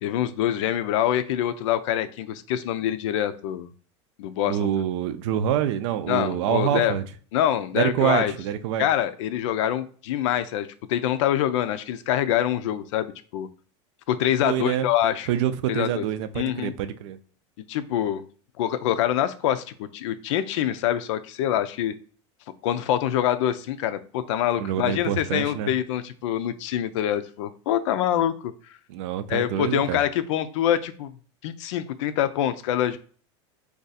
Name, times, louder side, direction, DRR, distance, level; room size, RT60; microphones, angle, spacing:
voice 1, 0.0-3.7 4.2-4.7 6.1-7.0 7.3-8.3 8.8-13.5 14.1-15.3 15.7-16.1 16.4-16.7 17.7-18.2 18.6-21.9 22.6-28.5 29.3-31.1 31.4-33.0, left 11 dB, 80° left, 12 dB, 0.4 m, -25 dB
voice 2, 4.5-7.0 7.7-8.9 14.4-14.9 15.3-17.2 24.6-25.7 28.9-30.0, right 10 dB, 75° right, 11 dB, 0.5 m, -26 dB
2.6 x 2.3 x 4.0 m, 0.43 s
supercardioid pair, 135°, 15 cm